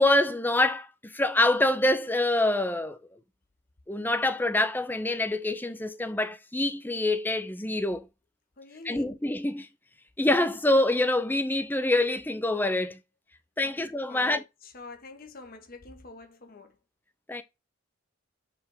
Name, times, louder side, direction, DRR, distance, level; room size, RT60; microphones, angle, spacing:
voice 1, 0.0-3.0 3.9-8.1 8.8-9.7 10.2-13.0 13.6-14.4 17.3-17.4, left 1 dB, 10° left, 0.6 m, -25 dB
voice 2, 8.6-9.2 13.6-13.8 14.1-16.8, left 3 dB, 45° left, 1.1 m, -46 dB
5.8 x 3.4 x 5.6 m
head